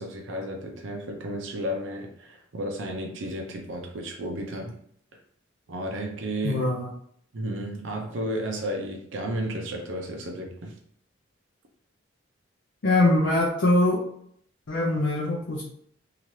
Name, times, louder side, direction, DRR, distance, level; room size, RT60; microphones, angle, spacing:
voice 1, 0.0-4.7 5.7-6.6 7.3-10.8, right 1 dB, 75° right, 1 dB, 0.6 m, -33 dB
voice 2, 6.4-6.9 12.8-14.0 14.7-15.6, left 2 dB, 65° left, -3 dB, 0.5 m, -22 dB
2.8 x 2.4 x 3.1 m, 0.66 s
head